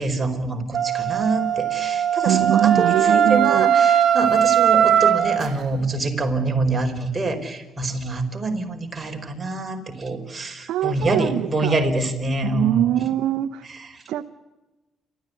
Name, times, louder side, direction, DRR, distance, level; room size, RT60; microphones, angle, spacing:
voice 1, 0.0-13.1, right 2 dB, 25° right, 4.8 m, -25 dB
Wind instrument woodwind instrument, 0.7-5.4, right 9 dB, 60° right, 2.8 m, -19 dB
voice 2, 2.3-3.7 10.7-11.8 12.4-13.7 14.1-14.2, right 12 dB, 75° right, 0.8 m, -22 dB
29.0 x 14.0 x 9.6 m
supercardioid pair, 75°, 0 cm